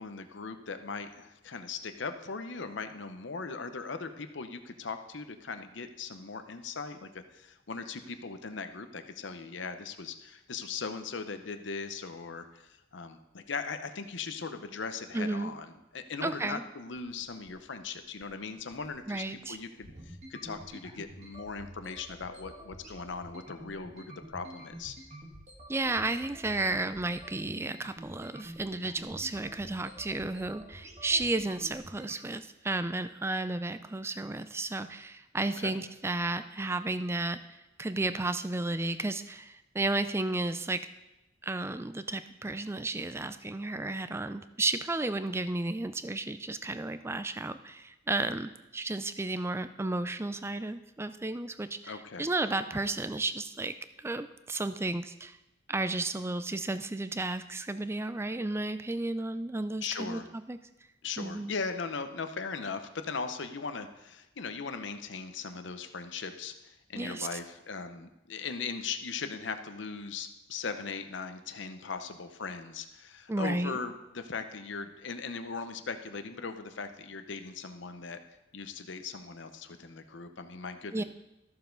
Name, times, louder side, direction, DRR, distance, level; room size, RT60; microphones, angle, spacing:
voice 1, 0.0-24.9 35.6-35.7 51.8-52.3 59.8-60.3 61.0-78.2 78.5-81.0, left 4 dB, 65° left, 8 dB, 0.7 m, -39 dB
voice 2, 15.1-15.5 16.2-16.6 19.1-19.6 25.7-40.9 41.4-55.4 55.7-60.2 60.5-60.6 61.2-61.5 66.9-67.4 73.3-73.8 80.9-81.0, right 2 dB, 15° right, 11 dB, 0.4 m, -33 dB
sound 1, 17.0-32.2, equal, 35° right, 1.6 m, -49 dB
13.5 x 7.0 x 3.9 m, 0.94 s
head